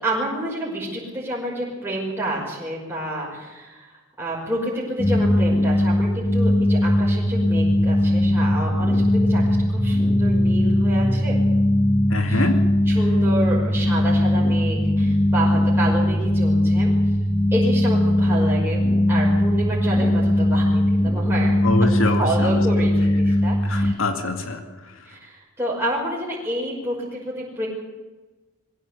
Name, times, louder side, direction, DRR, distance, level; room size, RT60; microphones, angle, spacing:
voice 1, 0.0-11.4 12.3-12.5 12.9-16.9 17.5-21.6 22.0-23.9 25.1-27.7, right 1 dB, 10° right, -5 dB, 5.7 m, -29 dB
sound 1, 5.0-23.9, left 1 dB, 15° left, 0.9 m, -19 dB
voice 2, 12.1-12.7 21.6-22.6 23.6-24.6, left 2 dB, 75° left, 5 dB, 2.4 m, -24 dB
22.0 x 16.5 x 8.4 m, 1.2 s
head